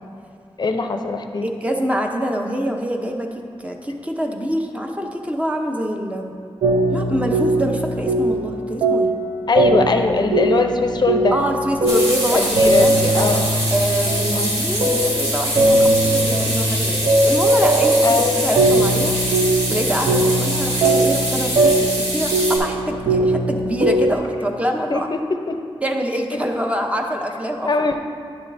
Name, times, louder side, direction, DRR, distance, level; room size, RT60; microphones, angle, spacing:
voice 1, 0.6-1.5 9.5-11.4 12.3-13.5 14.3-14.6 18.0-18.3 20.8-20.9 24.9-25.6 27.6-28.0, left 3 dB, 45° left, 6 dB, 0.5 m, -21 dB
voice 2, 1.4-3.3 3.6-6.3 6.9-9.1 11.3-13.3 13.7-18.0 18.4-19.2 19.7-25.1 25.8-27.7, equal, 15° right, 2 dB, 0.6 m, -25 dB
sound 1, 6.6-8.5 8.8-24.1, right 1 dB, 60° right, 0.7 m, -20 dB
sound 2, 11.8-22.6, right 1 dB, 85° right, 2.0 m, -24 dB
11.0 x 7.0 x 2.6 m, 2.4 s
wide cardioid pair, 115°, 10 cm